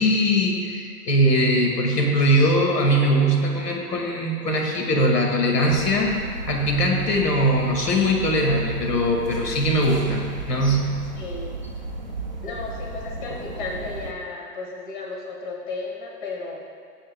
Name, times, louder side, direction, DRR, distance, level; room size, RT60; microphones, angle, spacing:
voice 1, 0.0-6.1 6.5-10.2 10.5-11.0, equal, 80° left, 0 dB, 2.2 m, -21 dB
sound 1, 5.7-14.1, right 2 dB, 30° right, 0.4 m, -34 dB
voice 2, 11.2-11.5 12.4-16.6, left 3 dB, 30° left, -2 dB, 1.3 m, -34 dB
19.5 x 7.6 x 2.3 m, 2.2 s
hypercardioid pair, 155°, 47 cm